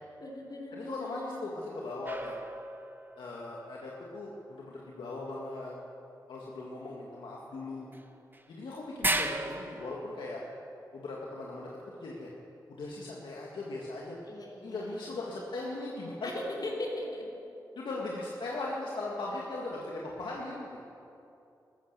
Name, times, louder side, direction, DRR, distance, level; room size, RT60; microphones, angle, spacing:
voice 1, 0.2-1.4 14.3-14.9 16.2-17.3, left 1 dB, 55° left, -2 dB, 4.0 m, -38 dB
voice 2, 0.7-2.4 3.2-5.7 6.3-7.9 8.5-10.4 10.9-12.3 12.7-14.2 14.6-16.3 17.8-20.8, left 2 dB, 80° left, -3 dB, 1.8 m, -39 dB
sound 1, 2.0-3.3 7.9-8.0 8.3-8.4 9.0-10.0, right 2 dB, 25° right, 1.2 m, -33 dB
14.0 x 14.0 x 6.9 m, 2.7 s
cardioid pair, 50°, 8 cm